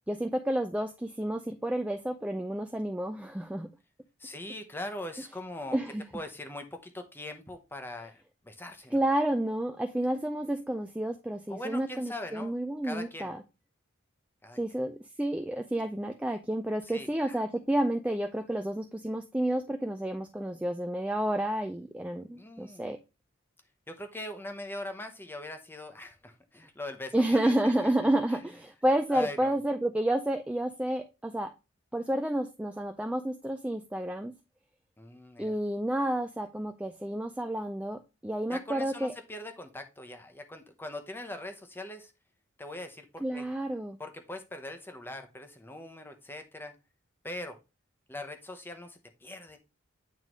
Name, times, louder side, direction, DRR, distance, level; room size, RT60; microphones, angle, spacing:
voice 1, 0.1-3.7 5.7-6.0 8.9-13.4 14.6-23.0 27.1-31.5 31.9-34.3 35.4-39.1 43.2-44.0, right 1 dB, 5° right, 6 dB, 0.3 m, -30 dB
voice 2, 4.2-5.8 6.1-9.0 11.5-12.5 12.8-13.3 14.4-14.6 16.8-17.4 22.3-22.9 23.9-27.7 29.1-29.5 35.0-35.5 38.5-42.1 42.6-43.5 44.0-46.7 47.2-47.6 48.1-49.6, left 1 dB, 10° left, 6 dB, 0.8 m, -41 dB
9.0 x 3.7 x 3.0 m, 0.27 s
head